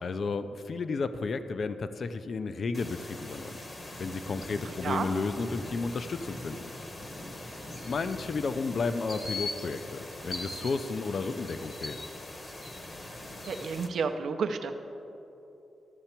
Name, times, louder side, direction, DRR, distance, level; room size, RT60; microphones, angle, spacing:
voice 1, 0.0-3.6 4.0-6.7 7.8-12.0, left 4 dB, 50° left, 11 dB, 0.4 m, -32 dB
sound 1, 2.7-13.9, left 2 dB, 30° left, 1.0 m, -41 dB
voice 2, 13.5-14.7, right 5 dB, 70° right, 6 dB, 0.6 m, -31 dB
13.0 x 6.8 x 4.4 m, 3.0 s
wide cardioid pair, 125°, 0 cm